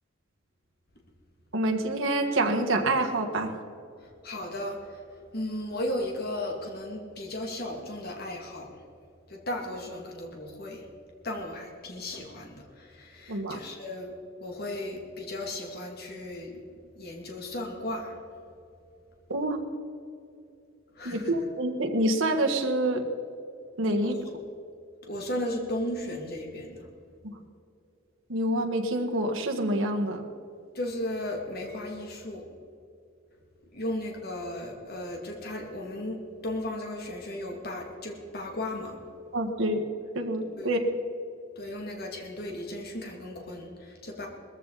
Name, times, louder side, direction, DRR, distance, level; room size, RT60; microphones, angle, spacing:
voice 1, 1.5-3.5 13.3-13.6 19.3-19.6 21.0-23.0 23.8-24.1 28.3-30.2 39.3-39.8 40.1-40.8, right 1 dB, 80° right, 2 dB, 1.6 m, -27 dB
voice 2, 4.0-5.0 5.3-8.8 9.3-10.9 11.2-14.1 14.4-18.2 20.9-21.3 24.0-24.2 25.0-26.9 30.7-32.5 33.7-39.0 40.6-40.7 41.6-44.3, left 1 dB, 50° left, 1 dB, 2.5 m, -35 dB
20.0 x 14.5 x 4.1 m, 2.6 s
head